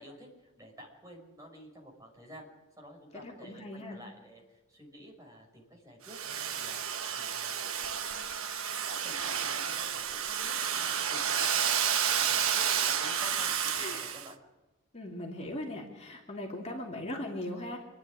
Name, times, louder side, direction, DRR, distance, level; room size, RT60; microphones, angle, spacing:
voice 1, 0.0-2.5 2.8-6.2 6.5-6.8 7.1-8.3 8.8-11.7 12.1-14.4, equal, 15° right, -1 dB, 6.0 m, -51 dB
voice 2, 3.1-4.0 13.8-14.1 14.9-17.8, left 1 dB, 30° left, -1 dB, 2.7 m, -39 dB
Domestic sounds home sounds, 6.1-14.3, right 8 dB, 70° right, 1.2 m, -31 dB
27.5 x 10.5 x 10.0 m, 1.2 s
head